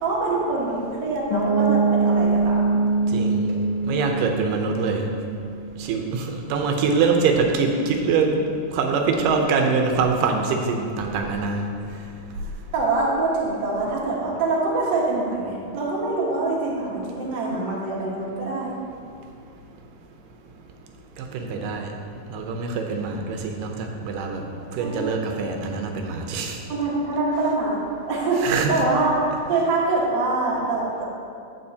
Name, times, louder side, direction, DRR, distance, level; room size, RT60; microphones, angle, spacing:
voice 1, 0.0-2.8 12.7-18.8 24.7-25.0 26.7-27.8 28.1-29.2 29.5-31.0, right 3 dB, 45° right, -5 dB, 1.4 m, -24 dB
Piano, 1.3-7.0, right 4 dB, 70° left, 2.4 m, -24 dB
voice 2, 3.1-3.5 3.8-5.0 5.8-8.5 8.7-11.7 21.2-21.9 22.3-23.7 24.0-24.4 24.7-26.6 28.4-28.7, right 4 dB, 80° right, 3 dB, 2.3 m, -24 dB
14.5 x 5.0 x 2.8 m, 2.3 s
omnidirectional pair, 3.9 m